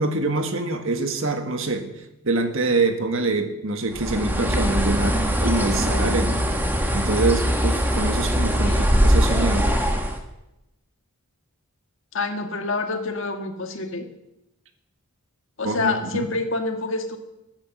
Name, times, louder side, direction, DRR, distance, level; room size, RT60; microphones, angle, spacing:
voice 1, 0.0-1.9 2.2-6.5 6.9-9.7 15.6-16.3, right 2 dB, 60° right, 6 dB, 1.6 m, -25 dB
Bird, 3.9-10.2, equal, 10° right, 1.4 m, -21 dB
voice 2, 12.1-14.1 15.6-17.2, left 3 dB, 55° left, 6 dB, 1.6 m, -27 dB
14.0 x 8.9 x 7.8 m, 0.90 s
head